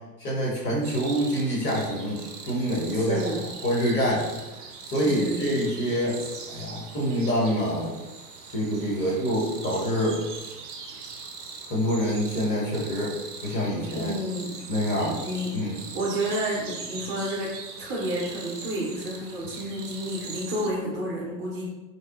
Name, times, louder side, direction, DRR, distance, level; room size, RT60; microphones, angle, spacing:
voice 1, 0.2-3.2 3.6-4.4 4.9-6.2 6.5-7.9 8.5-10.2 11.7-13.1 13.4-14.1 14.7-15.2 15.5-15.8, equal, 20° left, -5 dB, 0.7 m, -26 dB
sound 1, 0.8-20.7, right 5 dB, 70° right, 0.6 m, -41 dB
voice 2, 2.9-3.4 5.0-5.6 9.0-9.2 10.9-11.0 13.9-14.5 15.0-15.5 15.9-17.5 17.8-21.7, right 1 dB, 25° right, -4 dB, 0.6 m, -30 dB
3.1 x 2.8 x 2.3 m, 1.1 s
figure-of-eight pair, 95°, 49 cm